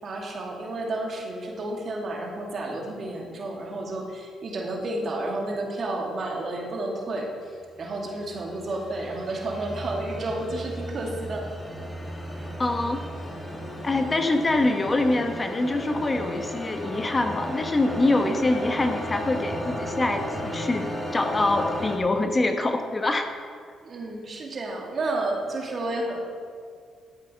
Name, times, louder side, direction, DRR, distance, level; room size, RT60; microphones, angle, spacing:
voice 1, 0.0-11.4 23.8-26.2, right 2 dB, 50° right, 0 dB, 2.3 m, -31 dB
sound 1, 7.9-22.0, equal, 5° left, 2.3 m, -34 dB
voice 2, 12.6-13.0 13.8-23.3, left 2 dB, 25° left, 5 dB, 1.0 m, -25 dB
12.5 x 7.5 x 5.5 m, 2.1 s
cardioid pair, 90°, 0 cm